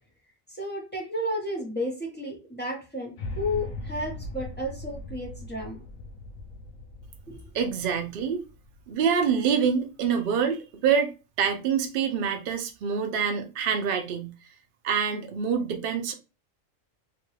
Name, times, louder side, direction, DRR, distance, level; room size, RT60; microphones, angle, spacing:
voice 1, 0.5-3.1 3.4-5.8 7.3-7.4, left 1 dB, 10° left, 0.8 m, -32 dB
sound 1, 3.2-9.4, left 2 dB, 80° left, 1.0 m, -40 dB
voice 2, 7.5-8.4 8.9-14.3 14.8-16.1, right 7 dB, 60° right, 0.5 m, -26 dB
2.9 x 2.2 x 3.1 m
omnidirectional pair, 1.4 m